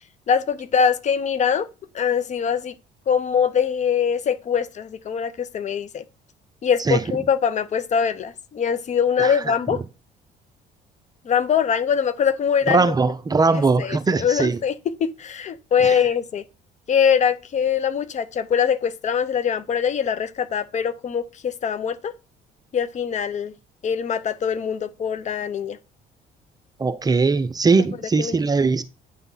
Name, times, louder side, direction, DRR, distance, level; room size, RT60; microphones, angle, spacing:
voice 1, 0.3-1.7 1.9-2.7 3.1-6.0 6.6-9.8 11.3-12.8 13.5-14.7 15.0-16.4 16.9-22.1 22.7-23.5 23.8-25.8 28.2-28.4, left 7 dB, 45° left, 0.8 m, -23 dB
voice 2, 9.2-9.8 12.7-14.6 15.8-16.0 26.8-28.8, right 4 dB, 20° right, 0.6 m, -20 dB
9.0 x 3.7 x 5.6 m
cardioid pair, 110°, 17 cm